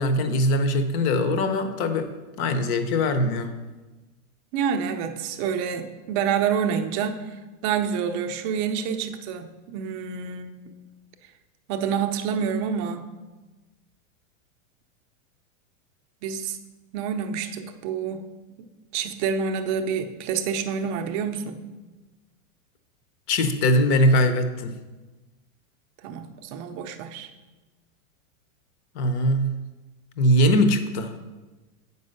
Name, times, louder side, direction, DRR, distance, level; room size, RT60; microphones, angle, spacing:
voice 1, 0.0-2.1 2.4-3.5 23.3-24.7 28.9-29.6 30.2-31.1, left 1 dB, 35° left, 9 dB, 0.8 m, -21 dB
voice 2, 4.5-7.4 7.6-10.7 11.7-13.1 16.2-16.6 16.9-18.3 18.6-18.7 18.9-21.7 26.0-27.3, right 7 dB, 30° right, 6 dB, 0.6 m, -28 dB
8.4 x 5.5 x 6.6 m, 1.2 s
supercardioid pair, 160°, 41 cm